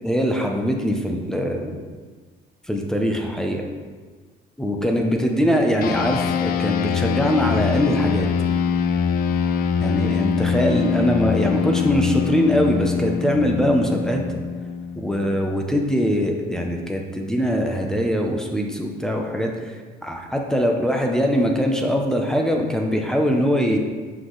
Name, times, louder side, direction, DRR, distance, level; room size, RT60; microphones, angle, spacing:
voice 1, 0.0-1.8 2.7-3.7 4.6-8.3 9.8-14.2 15.0-19.7 20.0-23.8, equal, 5° left, 2 dB, 0.7 m, -22 dB
sound 1, 5.8-15.5, left 6 dB, 60° left, 0.5 m, -23 dB
5.8 x 4.9 x 3.9 m, 1.4 s
cardioid pair, 110°, 17 cm